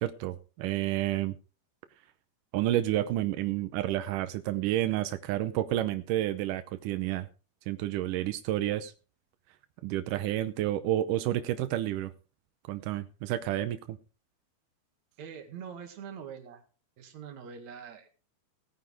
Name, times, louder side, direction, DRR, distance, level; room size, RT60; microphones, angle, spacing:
voice 1, 0.0-1.4 2.5-7.3 7.7-8.9 9.8-12.1 12.7-14.0, right 13 dB, 85° right, 10 dB, 1.8 m, -30 dB
voice 2, 15.2-16.6 17.0-18.1, right 7 dB, 55° right, 5 dB, 2.7 m, -44 dB
19.0 x 9.3 x 3.4 m, 0.36 s
omnidirectional pair, 4.7 m